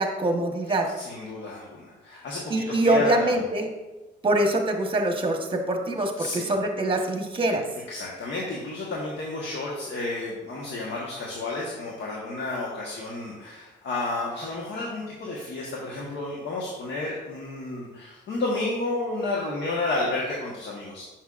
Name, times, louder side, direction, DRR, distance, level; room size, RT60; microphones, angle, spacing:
voice 1, 0.0-0.9 2.5-3.7 4.2-7.6, right 1 dB, 25° right, 3 dB, 1.2 m, -24 dB
voice 2, 0.6-3.4 6.2-6.5 7.9-21.0, left 2 dB, 65° left, -4 dB, 1.3 m, -31 dB
8.1 x 6.2 x 2.5 m, 1.1 s
cardioid pair, 90°, 20 cm